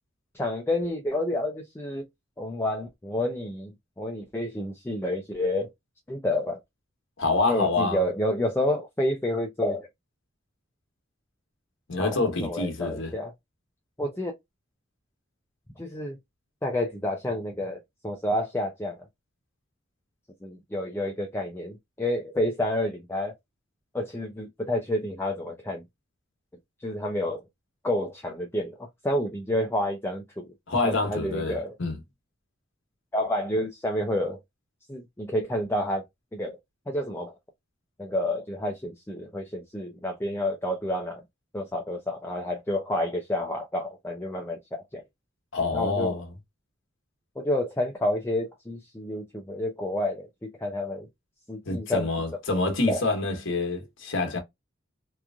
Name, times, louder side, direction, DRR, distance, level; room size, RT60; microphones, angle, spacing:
voice 1, 0.3-2.1 2.4-3.7 4.0-5.7 6.1-6.6 7.5-9.9 12.0-13.3 14.0-14.3 15.8-16.2 16.6-19.0 20.4-23.3 23.9-25.8 26.8-27.4 27.8-30.5 30.8-31.7 33.1-34.4 34.9-36.0 36.3-36.6 36.9-37.3 38.0-41.2 41.5-45.0 45.7-46.2 47.4-51.1 51.5-52.1 52.9-53.0, left 1 dB, 10° left, 0.4 m, -29 dB
voice 2, 7.2-8.0 11.9-13.1 30.7-32.0 45.5-46.3 51.7-54.4, left 3 dB, 65° left, 1.0 m, -26 dB
3.0 x 2.4 x 2.3 m
head